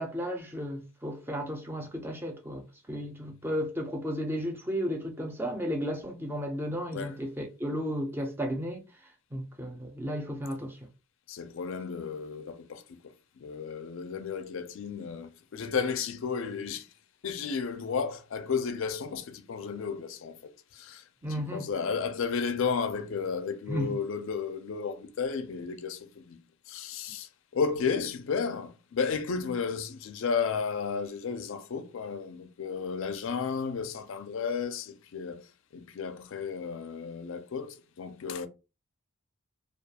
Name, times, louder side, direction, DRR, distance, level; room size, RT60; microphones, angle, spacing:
voice 1, 0.0-10.8 21.2-21.7 23.7-23.9, equal, 10° right, 0.4 m, -34 dB
voice 2, 11.3-13.0 13.4-16.9 17.2-26.4 26.7-35.4 35.7-38.5, left 5 dB, 60° left, 0.4 m, -33 dB
2.3 x 2.3 x 2.7 m
head